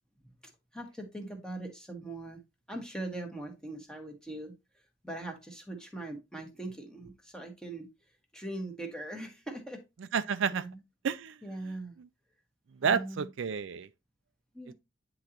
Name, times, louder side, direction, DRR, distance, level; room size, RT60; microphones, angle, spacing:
voice 1, 0.7-2.4 2.7-4.5 5.0-7.9 8.3-9.8 10.5-10.8 11.4-12.0 12.8-13.3 14.5-14.7, right 2 dB, 5° left, 1.3 m, -41 dB
voice 2, 10.1-10.6 11.0-11.4 12.8-13.9, right 6 dB, 70° right, 0.4 m, -30 dB
9.7 x 3.8 x 2.9 m
head